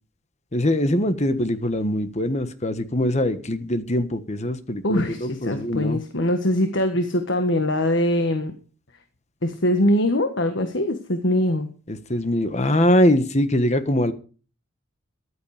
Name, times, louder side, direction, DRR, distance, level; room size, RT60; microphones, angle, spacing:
voice 1, 0.5-6.0 11.9-14.1, left 1 dB, 30° left, 1.4 m, -22 dB
voice 2, 4.8-8.5 9.4-11.7, left 1 dB, 60° left, 1.6 m, -22 dB
14.5 x 11.5 x 5.0 m
head